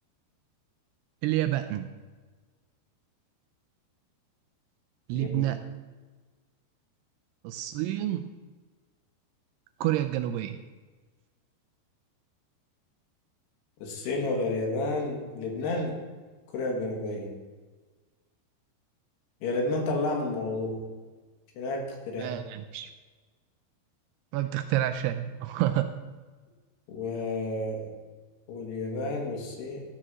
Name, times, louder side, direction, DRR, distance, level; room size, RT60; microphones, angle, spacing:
voice 1, 1.2-1.9 5.1-5.6 7.4-8.4 9.8-10.6 22.2-22.9 24.3-25.9, right 13 dB, 85° right, 8 dB, 2.4 m, -28 dB
voice 2, 5.1-5.5 13.8-15.9 16.5-17.4 19.4-20.8 21.6-22.4 26.9-27.9 28.5-29.8, left 2 dB, 70° left, 1 dB, 3.6 m, -31 dB
13.0 x 4.9 x 7.3 m, 1.4 s
omnidirectional pair, 5.1 m